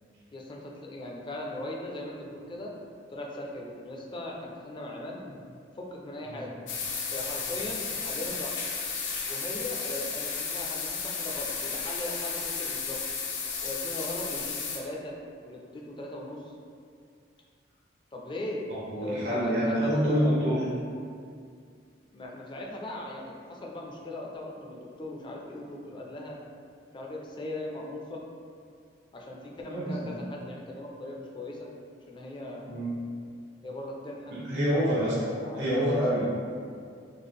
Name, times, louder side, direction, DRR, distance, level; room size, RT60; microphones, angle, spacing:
voice 1, 0.3-2.7 3.1-5.2 5.8-6.6 7.1-8.5 9.3-13.0 13.6-15.1 15.4-16.5 18.1-18.6 19.0-20.5 22.1-26.4 26.9-28.2 29.1-31.7 32.1-32.7 33.6-34.3 35.4-35.7, left 1 dB, 25° left, -2 dB, 0.4 m, -39 dB
sound 1, 6.7-14.8, left 5 dB, 85° left, 0.5 m, -33 dB
voice 2, 18.7-20.6 29.7-30.2 32.7-32.9 34.3-35.2 35.5-36.3, equal, 90° right, -9 dB, 1.2 m, -27 dB
3.6 x 2.0 x 3.5 m, 2.2 s
head